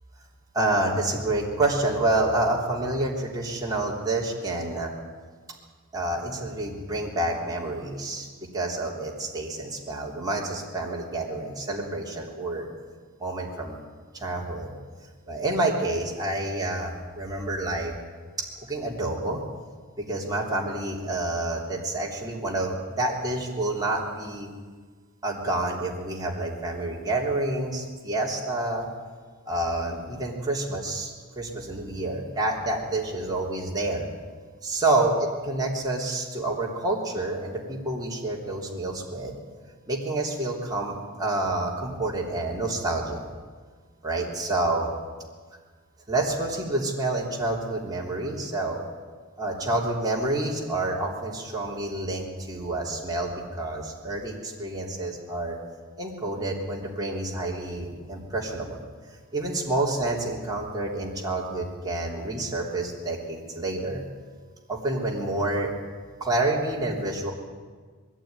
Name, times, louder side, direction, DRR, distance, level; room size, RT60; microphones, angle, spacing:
voice 1, 0.5-4.9 5.9-8.3 8.5-12.7 13.2-13.8 14.1-14.7 15.3-17.9 18.4-19.4 20.0-24.5 25.2-28.9 29.5-34.0 34.6-39.3 39.9-43.2 44.0-44.9 46.1-48.8 49.4-55.6 56.0-58.8 59.3-64.0 64.7-65.7 66.2-67.3, right 2 dB, 15° right, -3 dB, 3.4 m, -28 dB
21.0 x 14.5 x 9.6 m, 1.5 s
head